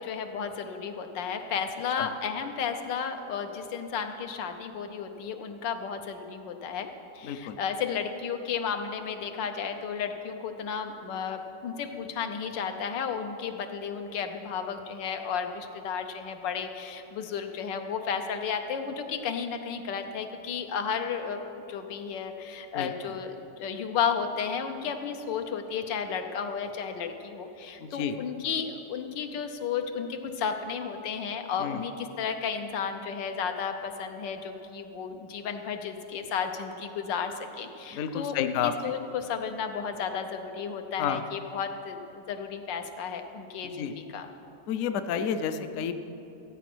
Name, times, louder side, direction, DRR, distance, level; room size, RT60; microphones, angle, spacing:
voice 1, 0.0-6.9 7.1-21.4 21.7-44.3, left 6 dB, 85° left, 6 dB, 1.5 m, -33 dB
voice 2, 7.2-7.6 22.7-23.1 27.8-28.2 31.6-31.8 37.9-38.9 41.0-41.2 43.6-43.9 44.7-45.9, left 8 dB, 65° left, 9 dB, 0.8 m, -31 dB
15.0 x 8.2 x 6.1 m, 2.9 s
omnidirectional pair, 1.9 m